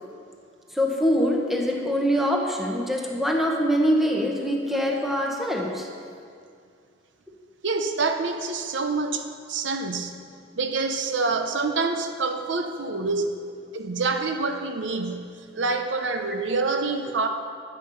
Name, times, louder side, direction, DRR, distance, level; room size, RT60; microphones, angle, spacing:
voice 1, 0.7-5.9, equal, ahead, 0 dB, 1.2 m, -24 dB
voice 2, 7.6-9.2 9.5-10.1 10.6-13.3 13.7-15.3 15.6-17.3, right 3 dB, 75° right, 6 dB, 0.8 m, -26 dB
12.0 x 8.7 x 5.6 m, 2.3 s
head